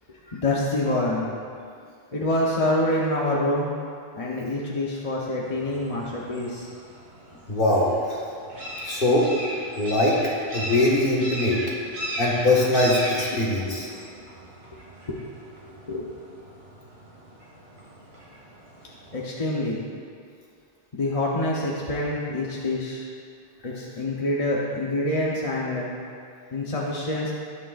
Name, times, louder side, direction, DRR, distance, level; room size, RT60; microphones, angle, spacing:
voice 1, 0.3-1.3 2.1-3.7 4.1-6.7 13.3-13.4 13.6-13.8 15.1-15.2 15.7-16.1 19.1-19.8 20.9-23.1 23.6-25.9 26.5-27.3, left 1 dB, 35° left, -4 dB, 1.0 m, -26 dB
sound 1, 5.4-19.2, equal, 80° right, 2.1 m, -37 dB
voice 2, 7.5-8.2 8.8-9.3 9.8-10.2 10.5-11.6 12.2-13.9, left 1 dB, 55° left, -5 dB, 1.9 m, -22 dB
19.0 x 6.5 x 2.5 m, 2.3 s
omnidirectional pair, 1.0 m